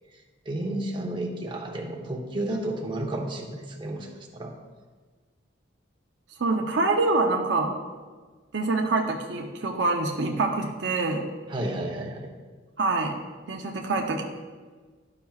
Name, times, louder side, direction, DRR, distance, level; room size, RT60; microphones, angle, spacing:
voice 1, 0.4-4.5 11.5-12.3, right 1 dB, 25° right, -1 dB, 0.9 m, -32 dB
voice 2, 6.4-7.7 8.5-11.2 12.8-13.1 13.5-14.3, right 3 dB, 60° right, 2 dB, 0.6 m, -25 dB
12.0 x 5.8 x 2.4 m, 1.4 s
head